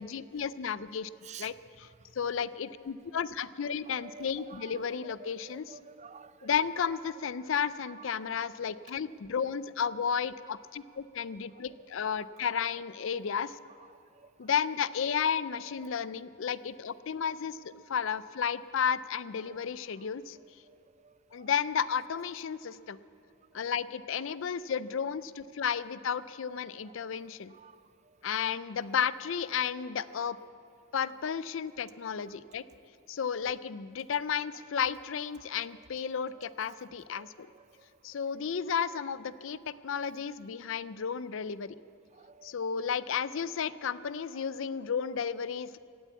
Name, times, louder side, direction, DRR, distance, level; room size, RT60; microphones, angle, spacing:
voice 1, 0.0-1.1 1.4-1.9 2.2-5.8 6.4-13.6 14.4-20.4 21.3-23.0 23.5-27.5 28.2-30.4 30.9-32.6 33.1-37.5 38.0-41.8 42.4-45.8, left 7 dB, 60° left, 17 dB, 0.4 m, -33 dB
voice 2, 3.9-4.9 5.2-6.5 14.1-14.3 21.0-21.5 26.8-26.9 27.5-27.9 36.4-36.5 37.2-37.9 42.1-42.5, right 6 dB, 30° right, 14 dB, 0.4 m, -51 dB
16.5 x 9.3 x 8.3 m, 2.7 s
head